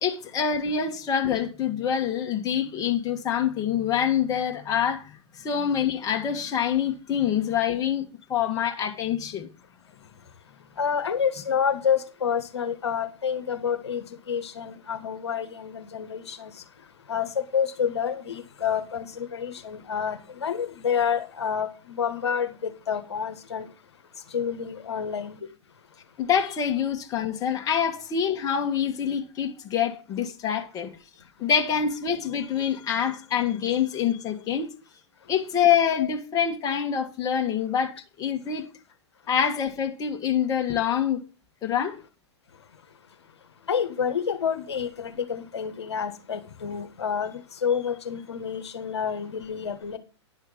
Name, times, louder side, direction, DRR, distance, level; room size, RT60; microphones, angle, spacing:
voice 1, 0.0-9.5 26.2-30.9 31.4-34.7 35.3-38.7 39.3-41.2 41.6-42.0, left 8 dB, 25° left, 1.6 m, -26 dB
voice 2, 10.8-16.5 17.1-23.7 24.3-25.4 43.7-50.0, left 7 dB, 65° left, 1.3 m, -28 dB
10.5 x 6.3 x 5.3 m
figure-of-eight pair, 105°, 15 cm